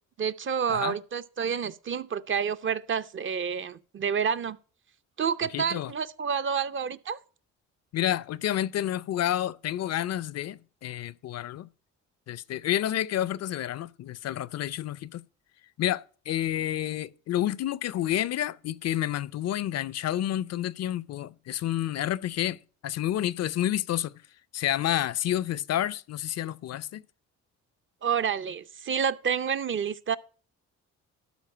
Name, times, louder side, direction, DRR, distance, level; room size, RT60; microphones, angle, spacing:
voice 1, 0.2-4.6 5.2-7.2 28.0-30.2, right 7 dB, 40° right, 0.6 m, -29 dB
voice 2, 5.5-5.9 7.9-11.7 12.3-15.2 15.8-24.2 24.5-27.0, left 12 dB, 55° left, 0.5 m, -29 dB
12.5 x 4.8 x 5.5 m
cardioid pair, 90°, 30 cm